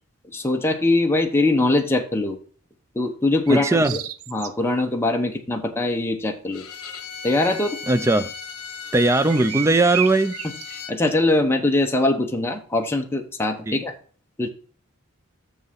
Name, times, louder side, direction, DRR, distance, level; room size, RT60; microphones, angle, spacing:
voice 1, 0.3-2.4 2.9-4.0 4.3-6.7 7.2-7.8 10.7-13.9 14.4-14.5, left 2 dB, 10° left, 0.9 m, -22 dB
voice 2, 3.5-3.9 7.9-8.3 8.9-10.3 13.7-13.8, right 2 dB, 15° right, 0.4 m, -19 dB
sound 1, 3.5-4.8 9.3-10.8, right 11 dB, 70° right, 0.5 m, -31 dB
Bowed string instrument, 6.5-11.0, left 6 dB, 70° left, 1.1 m, -37 dB
6.7 x 5.5 x 5.6 m
head